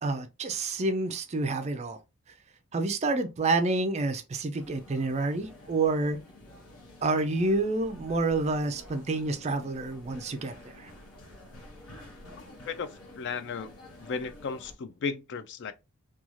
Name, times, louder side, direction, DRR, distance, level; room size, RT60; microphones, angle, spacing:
voice 1, 0.0-2.0 2.7-6.2 7.0-10.9, right 3 dB, 30° right, 0.3 m, -28 dB
sound 1, 4.5-14.7, left 1 dB, 75° left, 0.9 m, -50 dB
voice 2, 12.4-12.9 13.2-13.7 14.0-15.7, left 5 dB, 50° left, 0.3 m, -35 dB
3.0 x 2.3 x 2.4 m
head